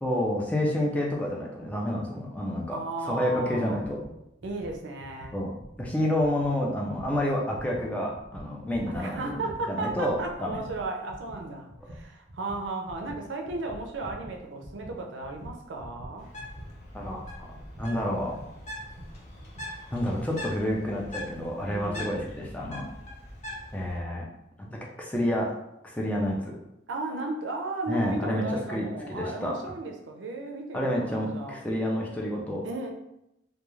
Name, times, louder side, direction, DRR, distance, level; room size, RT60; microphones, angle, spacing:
voice 1, 0.0-4.0 5.3-5.5 5.8-9.4 9.7-10.6 16.9-17.5 17.8-18.4 19.9-22.8 23.7-24.3 24.6-25.5 25.8-26.5 27.9-28.4 28.7-28.9 29.2-29.5 30.7-32.6, left 1 dB, 5° left, -2 dB, 0.4 m, -29 dB
voice 2, 2.7-3.8 4.4-5.4 8.9-16.3 21.7-22.2 26.9-31.6 32.6-32.9, right 2 dB, 80° right, 2 dB, 0.5 m, -35 dB
sound 1, 3.8-6.6 6.9-20.4, equal, 40° right, 0.6 m, -46 dB
Bird, 16.2-24.0, left 1 dB, 40° left, 0.7 m, -42 dB
2.3 x 2.2 x 3.0 m, 0.86 s
head